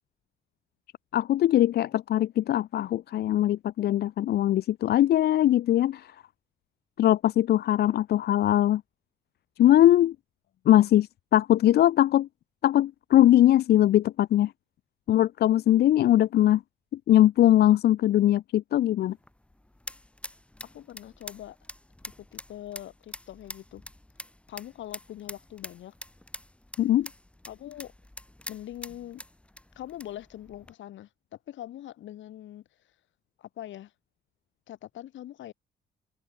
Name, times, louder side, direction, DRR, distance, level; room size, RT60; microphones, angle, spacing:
voice 1, 1.1-6.2 7.0-8.8 9.6-10.2 10.7-12.3 12.6-14.5 15.1-16.6 16.9-19.2 26.8-27.1, left 13 dB, 55° left, 0.4 m, -21 dB
sound 1, 19.1-30.7, left 1 dB, 5° left, 1.0 m, -46 dB
voice 2, 20.6-21.6 22.0-23.8 24.5-25.9 27.4-27.9 28.5-29.2 29.7-32.6 33.4-33.9 34.7-35.5, left 12 dB, 75° left, 1.4 m, -42 dB
cardioid pair, 90°, 20 cm